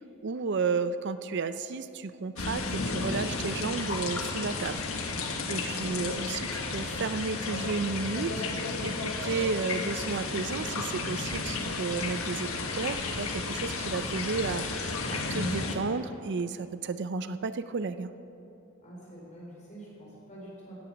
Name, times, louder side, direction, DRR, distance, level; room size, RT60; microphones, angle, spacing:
voice 1, 0.2-4.8 5.5-8.4 8.8-18.1, right 4 dB, 55° right, 12 dB, 0.5 m, -33 dB
sound 1, 2.4-15.8, left 3 dB, 85° left, 1.4 m, -33 dB
voice 2, 5.4-5.9 18.8-20.7, right 1 dB, 35° left, -5 dB, 3.9 m, -46 dB
16.5 x 9.0 x 6.2 m, 2.9 s
head